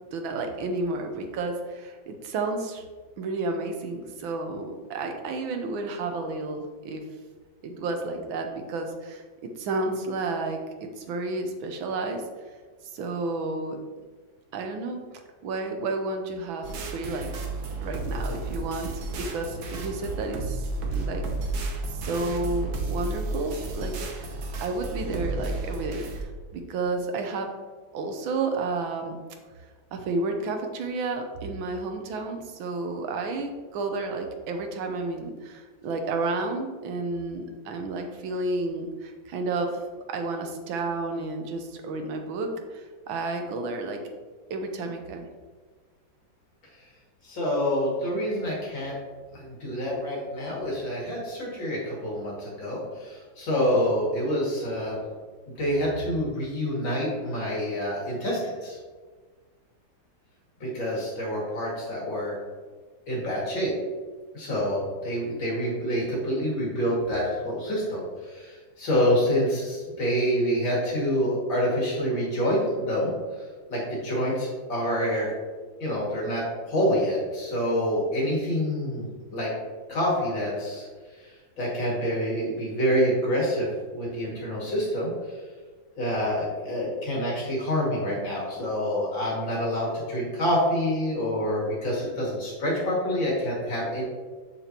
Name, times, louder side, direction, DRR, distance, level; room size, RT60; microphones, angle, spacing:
voice 1, 0.1-2.8 3.2-7.0 7.6-12.2 12.9-13.8 14.5-15.0 15.4-17.3 17.8-21.2 21.9-24.3 24.6-27.5 27.9-29.2 29.9-39.8 40.1-44.0 44.5-45.3, right 3 dB, 85° right, 4 dB, 1.6 m, -31 dB
sound 1, 16.6-26.2, right 2 dB, 60° right, 1.3 m, -32 dB
voice 2, 47.2-48.9 49.3-55.0 55.5-58.8 60.6-62.3 63.1-63.7 64.3-73.1 73.7-75.3 75.8-79.5 79.9-80.9 81.2-85.1 86.0-94.0, equal, 70° left, -5 dB, 2.9 m, -27 dB
6.9 x 6.7 x 2.9 m, 1.4 s
omnidirectional pair, 2.1 m